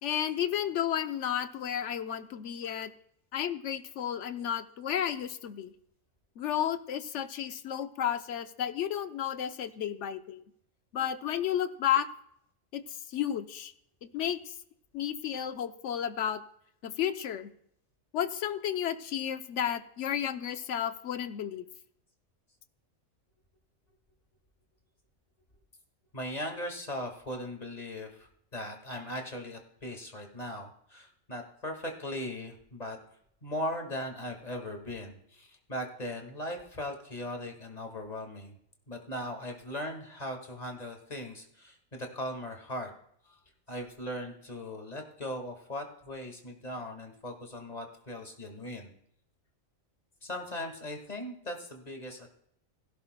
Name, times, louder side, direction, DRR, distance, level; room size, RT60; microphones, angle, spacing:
voice 1, 0.0-2.9 3.3-5.7 6.4-10.4 10.9-12.1 12.7-13.7 14.1-14.5 14.9-16.4 16.8-17.5 18.1-21.6, left 10 dB, 65° left, 10 dB, 1.0 m, -32 dB
voice 2, 26.1-33.0 33.4-38.5 38.9-42.9 43.2-43.4 43.7-48.9 50.2-52.3, left 1 dB, 30° left, 3 dB, 1.9 m, -39 dB
16.5 x 16.0 x 2.2 m, 0.70 s
omnidirectional pair, 1.4 m